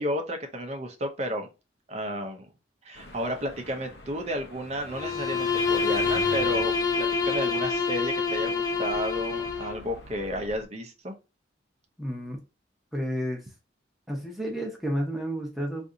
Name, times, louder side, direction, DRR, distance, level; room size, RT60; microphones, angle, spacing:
voice 1, 0.0-1.5 1.9-2.5 2.8-11.1, equal, 35° right, 0.6 m, -32 dB
sound 1, 3.0-10.7, left 1 dB, 65° left, 0.7 m, -43 dB
Bowed string instrument, 4.9-9.8, left 5 dB, 20° left, 0.4 m, -27 dB
voice 2, 12.0-12.4 12.9-13.4 14.1-15.9, equal, ahead, 0.8 m, -31 dB
2.7 x 2.5 x 3.6 m
head